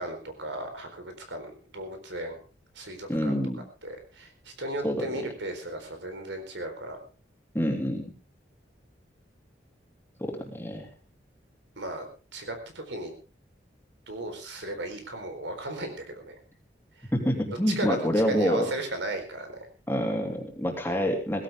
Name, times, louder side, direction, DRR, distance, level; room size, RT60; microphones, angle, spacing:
voice 1, 0.0-2.4 2.8-3.4 3.8-7.0 11.8-12.0 12.3-13.1 14.1-16.4 17.8-18.0 18.3-19.7, right 1 dB, 80° right, 6 dB, 4.2 m, -35 dB
voice 2, 3.1-3.6 4.8-5.3 7.5-8.0 10.2-10.9 17.1-18.7 19.9-21.4, equal, 10° left, 1 dB, 3.1 m, -27 dB
18.0 x 16.0 x 3.6 m, 0.33 s
head